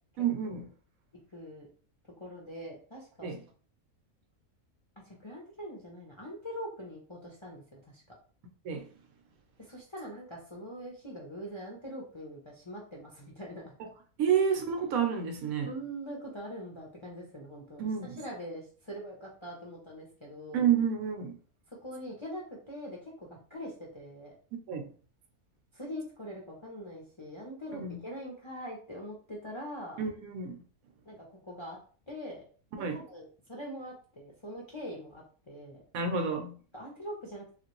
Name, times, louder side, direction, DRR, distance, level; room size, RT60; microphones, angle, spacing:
voice 1, 0.2-0.7 3.2-3.4 8.6-8.9 13.8-13.9 14.2-15.7 17.8-18.2 20.5-21.4 24.7-24.9 27.7-28.0 30.0-30.6 32.7-33.0 35.9-36.6, right 7 dB, 80° right, 1.0 m, -30 dB
voice 2, 1.3-1.7 2.2-3.3 5.1-8.0 9.6-13.7 15.6-17.8 18.2-20.6 21.8-24.3 25.7-30.0 31.1-31.8 32.1-32.4 32.7-35.8 36.7-37.5, equal, 35° left, 0.4 m, -43 dB
3.0 x 2.5 x 2.9 m
omnidirectional pair, 1.5 m